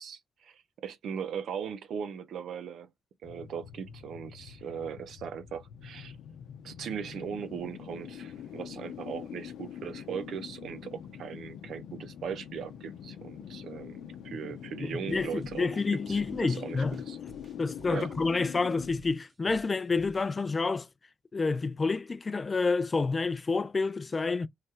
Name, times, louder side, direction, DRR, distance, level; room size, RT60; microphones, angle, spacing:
voice 1, 0.0-2.9 3.2-6.2 6.6-17.2 17.9-18.1, right 7 dB, 65° right, 0.6 m, -39 dB
sound 1, 3.2-18.9, left 9 dB, 80° left, 0.6 m, -44 dB
voice 2, 14.8-17.0 17.6-20.9 21.3-24.5, left 4 dB, 30° left, 0.4 m, -29 dB
sound 2, 15.1-20.4, right 2 dB, 35° right, 0.9 m, -53 dB
3.2 x 2.3 x 4.3 m
cardioid pair, 90°, 0 cm